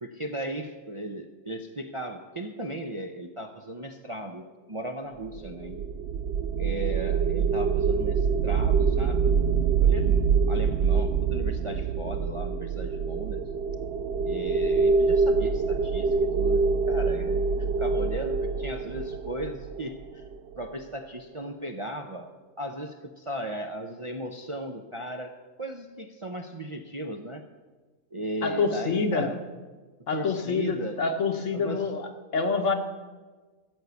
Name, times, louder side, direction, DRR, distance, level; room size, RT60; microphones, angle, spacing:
voice 1, 0.0-5.9 6.6-9.4 9.8-13.4 14.2-20.2 20.6-22.3 22.6-27.4 28.1-29.4 30.1-31.0 31.5-31.9, right 1 dB, 30° right, 4 dB, 0.6 m, -36 dB
sound 1, 5.3-20.5, right 5 dB, 65° right, 0.7 m, -25 dB
voice 2, 28.4-29.3 30.1-32.7, left 4 dB, 65° left, 6 dB, 1.5 m, -27 dB
13.5 x 8.0 x 7.0 m, 1.3 s
omnidirectional pair, 1.4 m